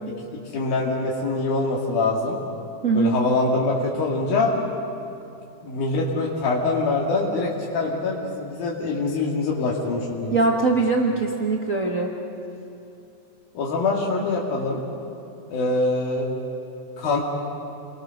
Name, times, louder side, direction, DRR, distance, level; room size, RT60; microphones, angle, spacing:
voice 1, 0.5-2.4 2.9-4.6 5.6-10.4 13.6-14.8 15.5-16.3 17.0-17.2, left 3 dB, 85° left, -3 dB, 4.0 m, -24 dB
voice 2, 2.8-3.2 10.3-12.1, right 3 dB, 90° right, -1 dB, 0.7 m, -21 dB
28.5 x 22.0 x 6.5 m, 2.7 s
omnidirectional pair, 4.0 m